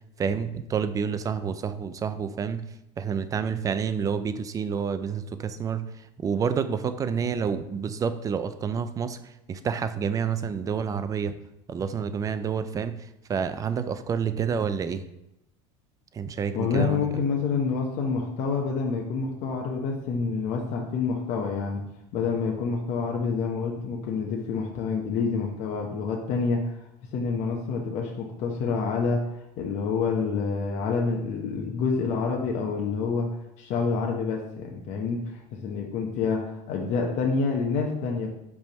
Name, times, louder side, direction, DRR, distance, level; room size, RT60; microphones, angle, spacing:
voice 1, 0.2-2.6 3.0-5.9 6.2-9.2 9.5-11.3 11.7-13.0 13.3-15.0 16.1-17.1, right 6 dB, 25° right, 11 dB, 0.4 m, -28 dB
voice 2, 16.5-21.8 22.1-26.6 27.1-29.3 29.6-33.3 33.6-38.3, left 5 dB, 55° left, 0 dB, 0.9 m, -27 dB
5.2 x 3.5 x 5.3 m, 0.85 s
supercardioid pair, 125°, 14 cm